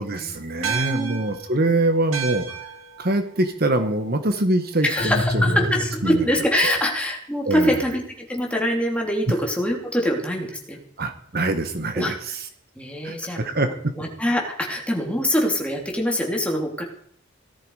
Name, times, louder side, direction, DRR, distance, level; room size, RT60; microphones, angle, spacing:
voice 1, 0.0-2.7 3.0-5.7 6.0-6.2 6.6-6.8 7.4-7.8 9.3-9.4 11.0-12.5 13.0-13.9, right 2 dB, 50° right, 8 dB, 1.4 m, -24 dB
voice 2, 0.6-1.2 4.8-10.8 11.9-12.1 12.8-13.6 13.9-16.8, equal, 5° left, 0 dB, 3.1 m, -24 dB
sound 1, 0.6-5.3, right 7 dB, 85° right, 2.2 m, -34 dB
sound 2, 5.0-6.4, left 1 dB, 25° left, 0.6 m, -25 dB
17.5 x 13.5 x 4.9 m, 0.63 s
head